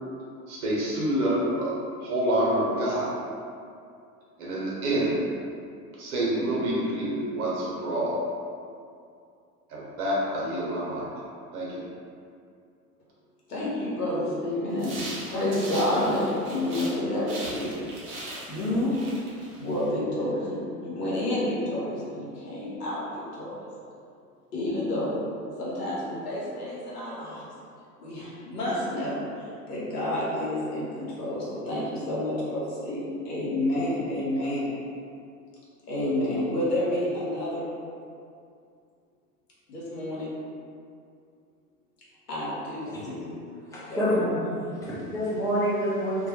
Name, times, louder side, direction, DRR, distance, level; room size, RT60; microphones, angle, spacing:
voice 1, 0.5-1.8 2.0-3.1 4.4-5.2 6.0-8.2 9.7-11.1 11.5-11.8, right 1 dB, 65° right, -6 dB, 0.9 m, -27 dB
voice 2, 13.5-15.0 15.3-16.2 16.5-17.8 18.5-18.9 19.6-23.7 24.5-25.2 25.6-27.4 28.0-34.7 35.9-37.7 39.7-40.3 42.3-43.3 43.9-44.3, left 1 dB, 80° left, -8 dB, 0.8 m, -29 dB
sound 1, 14.8-17.0 17.3-19.9, right 1 dB, 30° right, 0.7 m, -40 dB
voice 3, 43.7-46.3, equal, 10° left, -9 dB, 0.4 m, -27 dB
2.2 x 2.1 x 2.9 m, 2.4 s
figure-of-eight pair, 90°, 46 cm